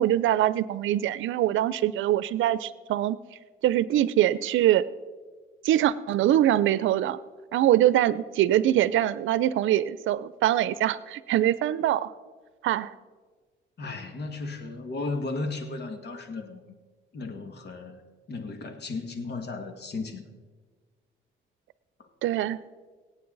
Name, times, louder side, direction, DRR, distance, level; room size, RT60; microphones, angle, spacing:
voice 1, 0.0-3.2 3.6-4.8 5.6-7.2 7.5-12.1 12.6-12.9 22.2-22.6, right 12 dB, 80° right, 17 dB, 0.6 m, -23 dB
voice 2, 13.8-16.6 17.1-18.0 18.3-20.3, left 3 dB, 55° left, 6 dB, 1.9 m, -35 dB
24.0 x 8.5 x 4.0 m, 1.5 s
cardioid pair, 90°, 20 cm